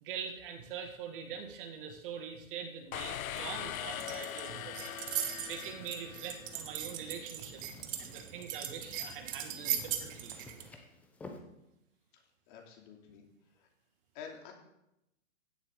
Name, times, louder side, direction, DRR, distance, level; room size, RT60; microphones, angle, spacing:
voice 1, 0.0-4.8 5.4-7.6 8.0-10.4, right 7 dB, 40° right, 5 dB, 1.9 m, -43 dB
sound 1, 2.9-6.7, left 11 dB, 80° left, 0.6 m, -41 dB
sound 2, 3.3-10.7, right 10 dB, 20° right, 1.0 m, -40 dB
sound 3, 6.4-11.4, left 3 dB, 5° left, 0.5 m, -53 dB
voice 2, 12.5-13.2 13.6-13.7 14.1-14.5, left 7 dB, 35° left, 1 dB, 2.7 m, -48 dB
16.0 x 11.0 x 3.7 m, 0.87 s
hypercardioid pair, 135°, 41 cm